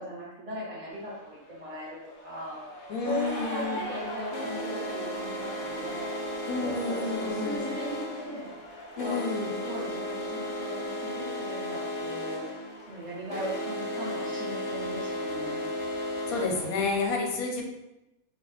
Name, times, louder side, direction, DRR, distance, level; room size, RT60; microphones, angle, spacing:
voice 1, 0.0-2.6 3.0-6.1 6.6-9.2 9.5-12.5 12.9-15.7 17.6-17.7, equal, 25° right, -6 dB, 1.0 m, -38 dB
sound 1, 0.9-1.0 2.1-17.1, equal, 40° left, 0.6 m, -35 dB
voice 2, 2.9-3.8 6.5-7.6 9.0-9.5 16.3-17.6, left 4 dB, 80° left, 1 dB, 1.1 m, -30 dB
2.5 x 2.4 x 4.0 m, 0.95 s
omnidirectional pair, 1.5 m